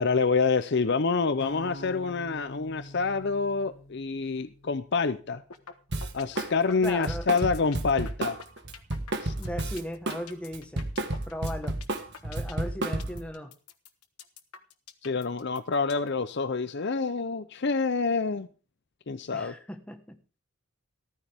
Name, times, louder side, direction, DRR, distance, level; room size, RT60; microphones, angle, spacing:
voice 1, 0.0-5.4 6.1-8.4 9.2-9.3 15.0-18.5 19.1-19.5, left 4 dB, 50° left, 0.6 m, -27 dB
sound 1, 1.4-5.5, left 1 dB, 70° left, 2.1 m, -46 dB
sound 2, 5.5-5.7 6.0-16.1, left 7 dB, 85° left, 1.4 m, -46 dB
Drum kit, 5.9-6.5 6.8-10.2 10.5-13.3, right 2 dB, 50° right, 1.6 m, -31 dB
voice 2, 6.8-7.3 9.4-10.9 11.3-11.8 12.2-13.5 19.3-20.2, equal, 5° left, 1.4 m, -37 dB
14.0 x 14.0 x 3.6 m
head